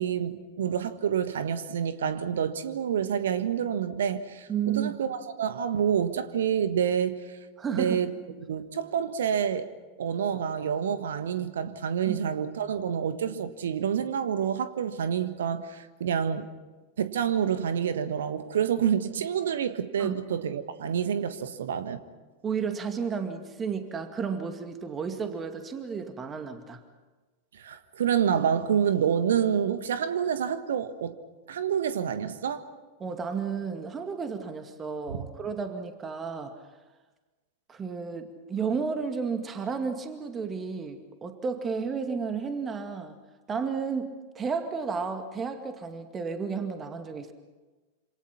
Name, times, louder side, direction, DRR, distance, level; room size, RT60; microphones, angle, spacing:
voice 1, 0.0-7.4 7.7-8.1 8.4-9.7 10.0-16.5 17.0-22.0 27.5-31.2 31.5-32.7 35.1-35.3, right 8 dB, 65° right, 1.5 m, -28 dB
voice 2, 4.5-5.0 7.6-8.0 12.1-12.2 20.0-20.2 22.4-26.8 33.0-36.6 37.7-43.2 43.5-47.3, right 5 dB, 20° right, 2.2 m, -32 dB
27.0 x 27.0 x 5.9 m
figure-of-eight pair, 90°, 0 cm